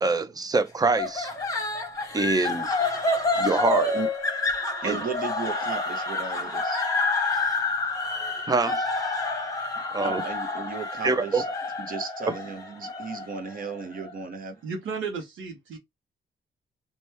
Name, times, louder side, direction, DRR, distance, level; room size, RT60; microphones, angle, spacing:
voice 1, 0.0-1.3 2.1-2.7 3.4-4.0 4.8-5.0 7.3-7.6 8.5-8.9 9.9-10.2 11.0-11.4, right 3 dB, 20° right, 0.4 m, -25 dB
sound 1, 1.0-14.1, left 3 dB, 15° left, 0.9 m, -28 dB
voice 2, 4.8-6.8 10.0-11.4 11.8-14.6, right 5 dB, 45° right, 0.7 m, -35 dB
voice 3, 14.6-15.8, right 5 dB, 90° right, 0.7 m, -33 dB
2.9 x 2.2 x 3.2 m
wide cardioid pair, 145°, 20 cm